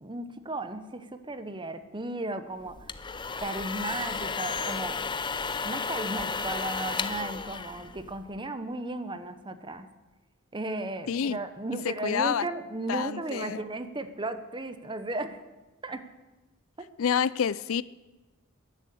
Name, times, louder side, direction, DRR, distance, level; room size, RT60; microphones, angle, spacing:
voice 1, 0.0-2.9 3.4-5.0 5.6-9.9 10.5-15.4 15.8-16.1 16.8-16.9, right 2 dB, 20° right, 0.9 m, -35 dB
sound 1, 2.7-8.4, left 5 dB, 20° left, 0.6 m, -33 dB
voice 2, 11.1-11.4 11.8-12.5 12.9-13.6 17.0-17.8, left 7 dB, 65° left, 0.4 m, -28 dB
14.5 x 11.0 x 8.4 m
head